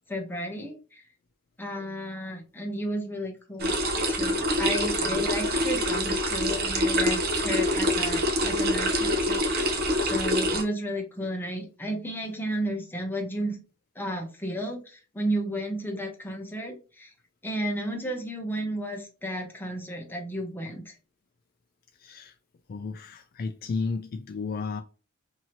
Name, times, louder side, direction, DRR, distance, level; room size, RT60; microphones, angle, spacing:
voice 1, 0.1-1.0 1.6-3.8 4.1-13.6 14.0-17.1 17.4-20.9, equal, 10° left, 0.8 m, -33 dB
sound 1, 3.6-10.6, equal, 50° right, 0.7 m, -25 dB
voice 2, 22.0-22.3 22.7-24.8, left 4 dB, 45° left, 0.3 m, -33 dB
2.8 x 2.7 x 2.8 m
head